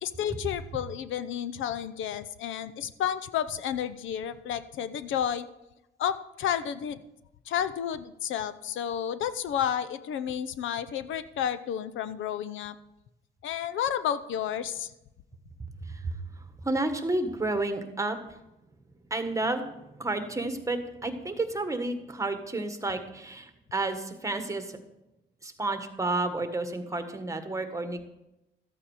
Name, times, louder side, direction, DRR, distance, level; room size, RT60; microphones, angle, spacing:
voice 1, 0.0-5.5 6.0-7.0 7.5-12.8 13.4-14.9, left 9 dB, 80° left, 14 dB, 0.7 m, -31 dB
voice 2, 15.8-18.4 19.1-24.8 25.4-28.0, right 2 dB, 15° right, 7 dB, 1.4 m, -31 dB
13.5 x 8.6 x 4.9 m, 0.92 s
cardioid pair, 90°, 20 cm